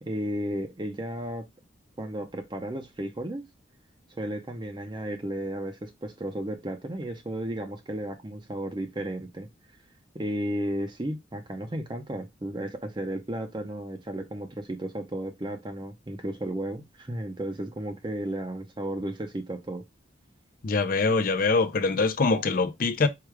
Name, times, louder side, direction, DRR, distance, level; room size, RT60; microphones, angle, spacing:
voice 1, 0.0-1.4 2.0-3.4 4.1-9.5 10.1-19.8, right 1 dB, 25° right, 0.6 m, -33 dB
voice 2, 20.6-23.1, left 4 dB, 45° left, 0.5 m, -24 dB
4.8 x 2.3 x 4.6 m
head